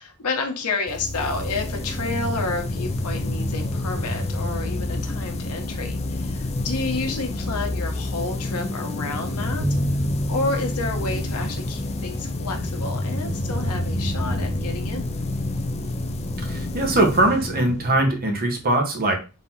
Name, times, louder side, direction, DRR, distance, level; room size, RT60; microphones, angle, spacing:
voice 1, 0.0-9.6 10.3-15.1, left 3 dB, 80° left, 4 dB, 1.0 m, -30 dB
sound 1, 0.9-18.4, left 1 dB, 30° left, 0.5 m, -28 dB
sound 2, 9.6-13.3, equal, 60° right, 1.0 m, -29 dB
voice 2, 16.5-19.2, right 2 dB, 45° right, 3 dB, 1.0 m, -21 dB
4.0 x 2.8 x 4.2 m, 0.32 s
head